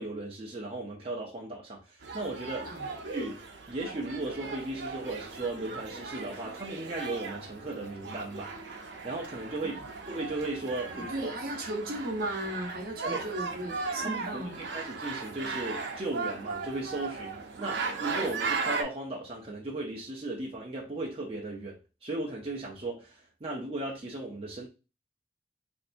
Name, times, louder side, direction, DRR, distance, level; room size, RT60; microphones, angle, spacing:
voice 1, 0.0-2.7 3.1-8.5 9.0-9.8 10.1-11.3 13.0-13.2 13.8-24.7, right 2 dB, 35° right, 0.6 m, -36 dB
sound 1, 2.0-18.8, right 4 dB, 85° right, 0.6 m, -37 dB
voice 2, 10.9-14.6, right 1 dB, 55° right, 0.9 m, -36 dB
3.2 x 2.7 x 2.6 m
head